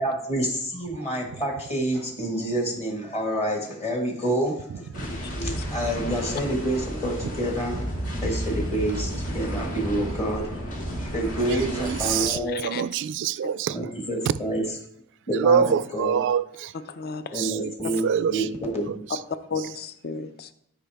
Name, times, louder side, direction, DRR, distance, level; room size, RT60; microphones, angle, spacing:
voice 1, 0.0-7.8 8.2-12.6 13.7-14.6 15.3-15.6 15.9-16.2 17.3-19.0, right 1 dB, 30° left, 0 dB, 1.5 m, -28 dB
sound 1, 4.9-12.3, equal, 65° left, 2.4 m, -32 dB
voice 2, 5.1-5.6 12.3-12.8 17.0-17.4 19.5-20.5, left 4 dB, 45° left, 11 dB, 0.5 m, -34 dB
voice 3, 11.4-13.8 15.3-16.7 17.3-17.7 18.0-18.5 18.9-19.2 19.6-19.7, right 7 dB, 55° right, 17 dB, 0.3 m, -26 dB
12.5 x 5.1 x 3.4 m, 0.76 s
head